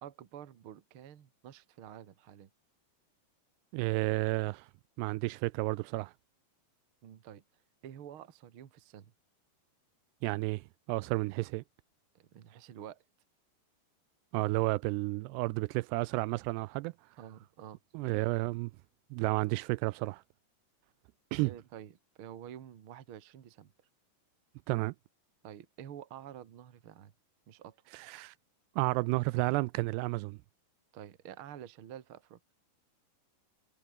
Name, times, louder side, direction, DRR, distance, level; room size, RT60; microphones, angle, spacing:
voice 1, 0.0-2.5 7.0-7.4 7.8-9.1 12.1-13.0 17.2-17.8 21.4-23.7 25.4-27.1 27.5-27.8 30.9-32.4, right 10 dB, 65° right, 1.3 m, -49 dB
voice 2, 3.7-4.7 5.0-6.1 10.2-11.6 14.3-16.9 17.9-18.7 19.1-20.2 21.3-21.5 24.7-24.9 27.9-28.3 28.8-30.4, right 22 dB, 85° right, 2.5 m, -31 dB
omnidirectional pair, 5.0 m